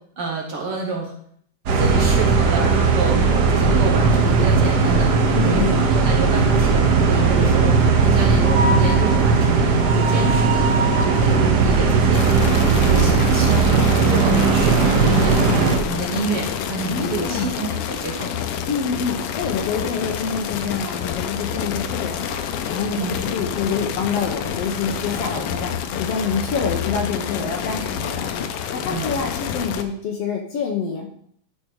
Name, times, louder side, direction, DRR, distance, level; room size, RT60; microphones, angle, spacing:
voice 1, 0.2-1.1 1.8-3.2 3.5-5.2 5.4-7.8 8.0-10.7 11.0-12.3 12.6-18.3 22.9-23.1 28.9-29.1, right 3 dB, 55° right, 1 dB, 1.9 m, -28 dB
sound 1, 1.7-15.8, right 4 dB, 85° right, 0.9 m, -17 dB
voice 2, 5.3-5.9 16.9-17.5 18.7-31.1, left 5 dB, 65° left, 3 dB, 1.8 m, -27 dB
sound 2, 12.1-29.8, left 8 dB, 90° left, 1.2 m, -28 dB
12.0 x 5.1 x 4.7 m, 0.63 s
omnidirectional pair, 3.6 m